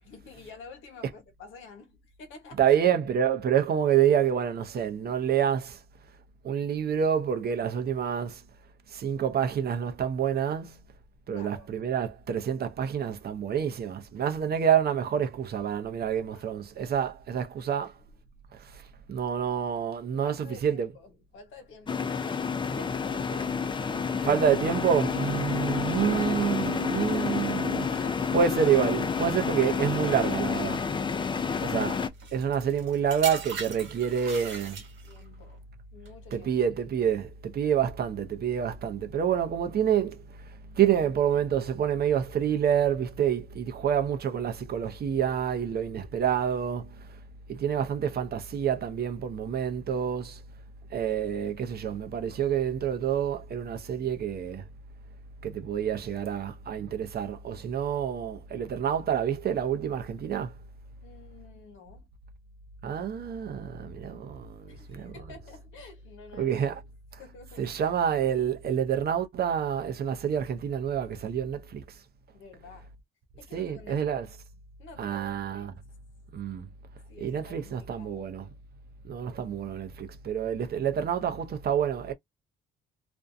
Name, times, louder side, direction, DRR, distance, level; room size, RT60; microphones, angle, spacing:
voice 1, 0.0-2.8 11.3-11.7 16.3-16.5 17.6-17.9 20.2-24.5 24.8-25.0 27.7-28.4 35.0-35.6 35.9-36.5 48.1-48.2 61.0-62.1 62.9-63.1 64.7-66.7 67.2-67.8 72.3-72.9 73.4-74.1 74.8-75.8 77.1-78.2, left 4 dB, 80° left, 1.1 m, -49 dB
voice 2, 2.5-5.8 6.4-8.4 8.9-10.8 11.3-18.0 18.5-18.8 19.1-20.9 24.1-30.8 31.6-32.0 32.3-34.8 36.3-47.2 47.5-50.4 50.9-54.7 55.4-60.6 62.8-65.4 66.3-66.8 67.1-67.2 67.5-72.0 73.5-74.3 75.0-75.8 76.3-76.7 77.2-78.5 79.0-82.1, right 8 dB, 50° right, 0.6 m, -28 dB
sound 1, 21.9-32.1, left 6 dB, 25° left, 0.4 m, -29 dB
sound 2, 32.2-35.3 36.1-36.3, right 6 dB, 75° right, 1.3 m, -39 dB
2.5 x 2.2 x 2.5 m
cardioid pair, 90°, 20 cm